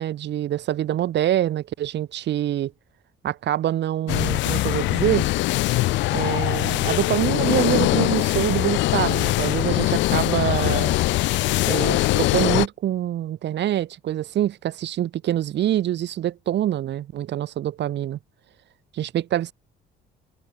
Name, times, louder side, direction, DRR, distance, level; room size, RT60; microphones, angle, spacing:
voice 1, 0.0-2.7 3.2-5.3 6.1-11.0 11.6-18.2 18.9-19.5, right 12 dB, 70° right, 4.1 m, -25 dB
sound 1, 4.1-12.7, left 18 dB, 75° left, 0.5 m, -22 dB
cardioid pair, 85°, 19 cm